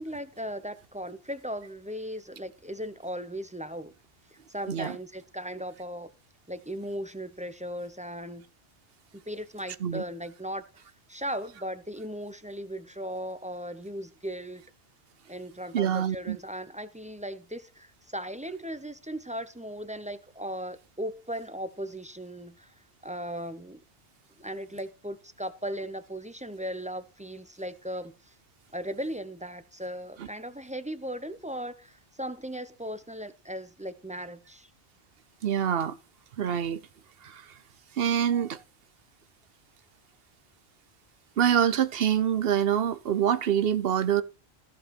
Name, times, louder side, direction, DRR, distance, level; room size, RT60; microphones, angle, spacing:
voice 1, 0.0-3.9 4.5-6.1 6.5-8.4 9.1-10.8 11.1-14.6 15.3-22.7 23.0-23.8 24.4-28.3 28.7-34.7, equal, 10° right, 0.5 m, -37 dB
voice 2, 15.7-16.4 30.2-30.3 35.4-36.0 36.4-36.8 37.2-37.5 38.0-38.6 41.4-44.2, right 9 dB, 60° right, 0.9 m, -25 dB
14.5 x 5.2 x 5.1 m
omnidirectional pair, 1.2 m